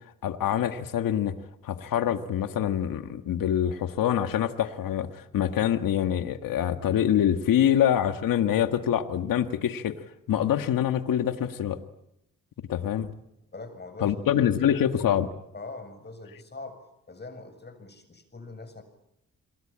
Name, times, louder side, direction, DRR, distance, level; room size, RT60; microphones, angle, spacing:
voice 1, 0.2-1.4 1.6-10.0 10.3-11.8 12.7-13.1 14.0-15.3, left 10 dB, 80° left, 9 dB, 1.8 m, -25 dB
voice 2, 13.5-14.4 15.5-16.8 17.1-18.8, left 3 dB, 30° left, 10 dB, 7.6 m, -42 dB
27.5 x 22.5 x 8.8 m, 0.83 s
cardioid pair, 65°, 33 cm